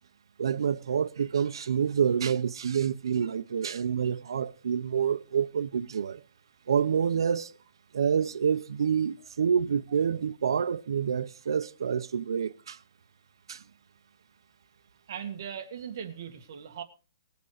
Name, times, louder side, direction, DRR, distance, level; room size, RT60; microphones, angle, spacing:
voice 1, 0.4-6.2 6.7-7.5 7.9-12.8 13.5-13.6, right 7 dB, 85° right, 0.7 m, -27 dB
voice 2, 15.1-16.8, right 8 dB, 50° right, 1.9 m, -39 dB
20.5 x 8.1 x 4.9 m
hypercardioid pair, 170°, 2 cm